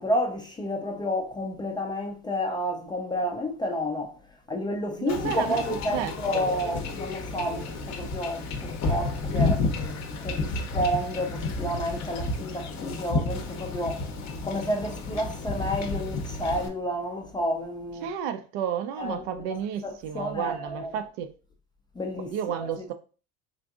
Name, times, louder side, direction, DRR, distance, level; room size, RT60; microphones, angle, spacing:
voice 1, 0.0-4.2 4.5-9.7 10.2-14.1 14.4-18.1 19.0-19.6 19.8-20.9 22.0-22.9, equal, 10° left, 0.3 m, -30 dB
voice 2, 5.0-5.6 5.9-6.5 18.0-21.3 22.3-22.9, right 8 dB, 65° right, 0.5 m, -32 dB
Wind / Ocean / Boat Water vehicle, 5.1-16.7, left 3 dB, 40° left, 0.6 m, -31 dB
3.8 x 2.5 x 2.4 m
hypercardioid pair, 85°, 43 cm